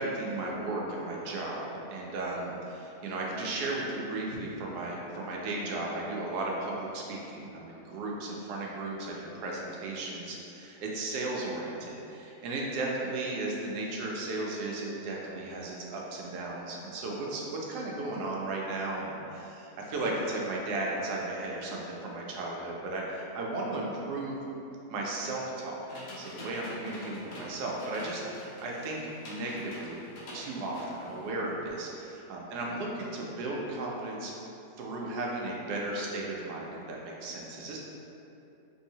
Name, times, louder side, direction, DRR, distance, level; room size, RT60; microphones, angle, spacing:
voice 1, 0.0-24.4 24.9-25.8 26.2-30.0 30.3-34.3 34.8-37.8, right 2 dB, 85° right, -2 dB, 1.1 m, -35 dB
sound 1, 25.9-31.3, left 1 dB, 90° left, 1.3 m, -46 dB
3.3 x 2.7 x 2.7 m, 2.8 s
omnidirectional pair, 1.7 m